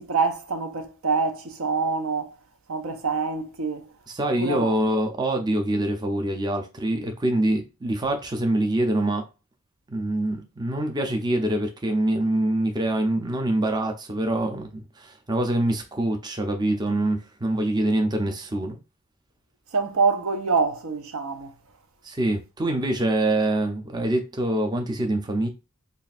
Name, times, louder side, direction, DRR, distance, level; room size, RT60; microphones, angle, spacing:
voice 1, 0.0-2.4 2.7-4.0 4.4-4.7 19.7-21.6, right 4 dB, 65° right, 0.6 m, -26 dB
voice 2, 4.1-9.2 9.9-18.8 22.0-25.5, right 1 dB, 20° right, 0.5 m, -25 dB
3.3 x 2.4 x 4.1 m
head